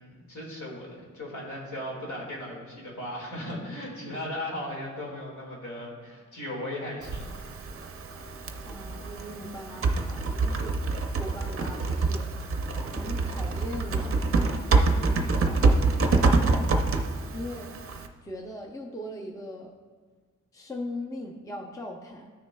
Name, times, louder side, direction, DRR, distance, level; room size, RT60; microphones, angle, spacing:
voice 1, 0.0-7.3, left 1 dB, 70° left, -2 dB, 1.9 m, -37 dB
Typing, 7.0-18.1, right 3 dB, 45° right, 0.5 m, -26 dB
voice 2, 8.7-10.9 11.2-12.3 12.9-17.0 17.3-17.7 18.2-19.7 20.5-22.3, left 1 dB, 10° left, 1 dB, 0.5 m, -40 dB
13.5 x 6.5 x 2.2 m, 1.5 s
wide cardioid pair, 175°, 31 cm